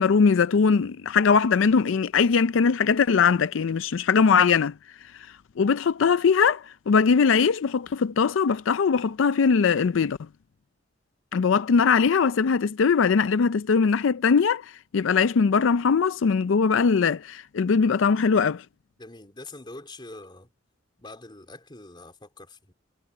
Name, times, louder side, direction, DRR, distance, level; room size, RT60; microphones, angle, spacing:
voice 1, 0.0-4.7 5.6-10.2 11.3-18.6, left 5 dB, 85° left, 0.4 m, -21 dB
voice 2, 19.0-20.5 21.0-22.7, left 2 dB, 25° left, 3.4 m, -44 dB
head